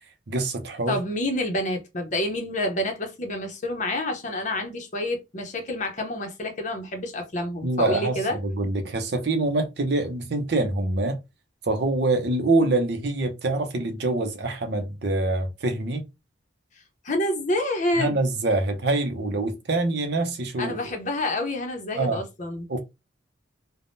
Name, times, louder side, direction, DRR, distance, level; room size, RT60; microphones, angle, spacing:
voice 1, 0.3-0.9 7.6-11.2 11.7-16.1 18.0-20.8 21.9-22.2 22.7-22.8, right 2 dB, 55° right, 0.6 m, -25 dB
voice 2, 0.9-8.4 17.0-18.2 20.6-22.7, left 1 dB, 40° left, 0.7 m, -28 dB
3.4 x 2.1 x 2.6 m
head